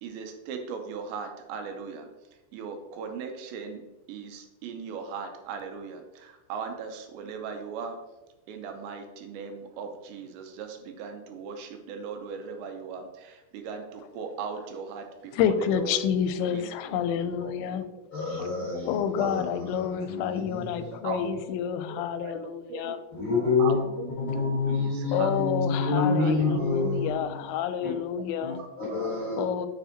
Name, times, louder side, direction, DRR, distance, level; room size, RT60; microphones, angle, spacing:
voice 1, 0.0-2.1 2.5-3.8 4.1-8.0 8.5-16.0 16.5-17.0 17.4-17.5 18.6-18.7 19.2-19.3 21.0-21.2 21.9-22.9 23.6-25.3 26.0-26.3 28.6-28.7, right 6 dB, 80° right, 5 dB, 2.9 m, -38 dB
voice 2, 15.3-17.8 18.3-18.4 18.8-23.0 25.1-28.6 29.4-29.7, left 8 dB, 90° left, 10 dB, 2.9 m, -29 dB
voice 3, 18.1-21.0 23.1-23.8 24.2-27.5 27.8-27.9 28.4-29.4, left 3 dB, 65° left, -6 dB, 1.2 m, -28 dB
7.1 x 7.0 x 2.9 m, 1.0 s
omnidirectional pair, 5.2 m